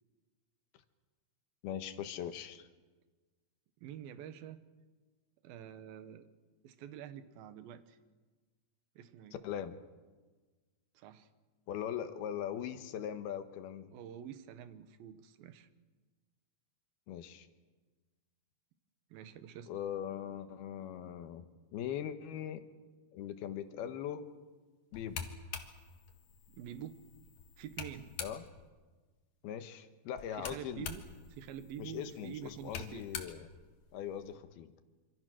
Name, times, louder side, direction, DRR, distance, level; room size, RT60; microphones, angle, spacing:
voice 1, 1.6-2.7 9.4-9.8 11.7-13.9 17.1-17.5 19.7-22.6 23.1-24.3 24.9-25.3 28.2-28.4 29.4-30.9 31.8-33.5 33.9-34.7, left 9 dB, 80° left, 9 dB, 3.1 m, -40 dB
voice 2, 3.8-4.6 5.4-6.3 6.6-8.0 9.0-9.4 10.9-11.3 13.9-15.7 19.1-19.7 26.5-27.0 27.6-28.1 30.3-33.1, right 10 dB, 75° right, 11 dB, 2.9 m, -47 dB
sound 1, 24.9-28.7 30.2-34.4, left 6 dB, 55° left, 2.7 m, -47 dB
26.5 x 25.5 x 6.3 m, 1.3 s
omnidirectional pair, 4.4 m